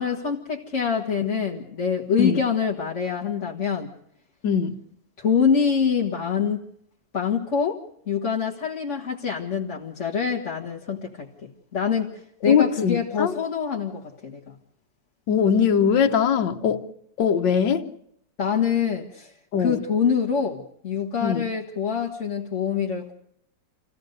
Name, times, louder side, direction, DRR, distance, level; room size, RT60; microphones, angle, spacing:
voice 1, 0.0-3.9 5.2-6.6 7.1-14.6 18.4-19.3 19.6-23.1, left 6 dB, 45° left, 2.0 m, -25 dB
voice 2, 4.4-4.8 12.5-13.3 15.3-16.8 17.2-17.9 19.5-19.8 21.2-21.4, left 7 dB, 90° left, 1.7 m, -21 dB
27.0 x 16.0 x 6.6 m
omnidirectional pair, 1.9 m